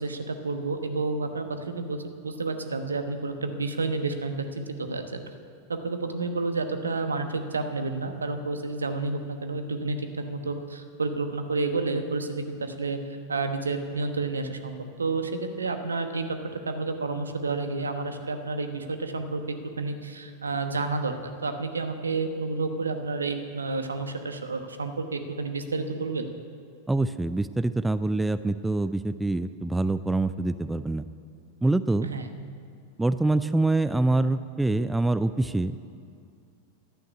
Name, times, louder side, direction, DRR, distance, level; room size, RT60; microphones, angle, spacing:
voice 1, 0.0-5.0 5.7-13.0 13.3-15.3 15.6-16.4 16.7-19.4 19.8-21.1 21.4-26.3 32.0-32.3, right 3 dB, 75° right, 7 dB, 1.1 m, -30 dB
voice 2, 26.9-31.1 31.6-32.1 33.0-35.8, right 2 dB, 5° right, 12 dB, 0.4 m, -25 dB
11.5 x 9.2 x 9.4 m, 2.4 s
figure-of-eight pair, 90°, 0 cm